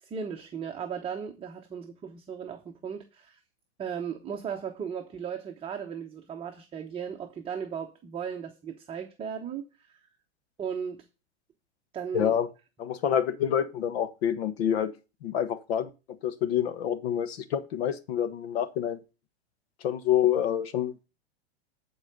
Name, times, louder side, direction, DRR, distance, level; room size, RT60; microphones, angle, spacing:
voice 1, 0.0-3.4 3.8-10.0 10.6-11.0 11.9-12.4, right 7 dB, 15° right, 1.0 m, -36 dB
voice 2, 12.1-12.5 12.8-14.9 15.2-15.9 16.2-19.0 19.8-21.0, left 9 dB, 65° left, 1.4 m, -27 dB
11.5 x 4.7 x 6.8 m
hypercardioid pair, 130°, 33 cm